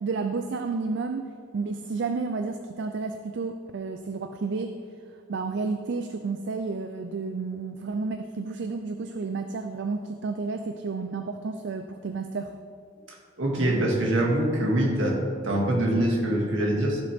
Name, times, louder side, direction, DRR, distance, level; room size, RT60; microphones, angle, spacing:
voice 1, 0.0-4.7 5.3-12.5, right 4 dB, 65° right, 7 dB, 0.4 m, -31 dB
voice 2, 13.4-15.2 15.4-17.0, right 1 dB, 80° right, -2 dB, 2.0 m, -24 dB
15.0 x 6.5 x 3.5 m, 2.3 s
head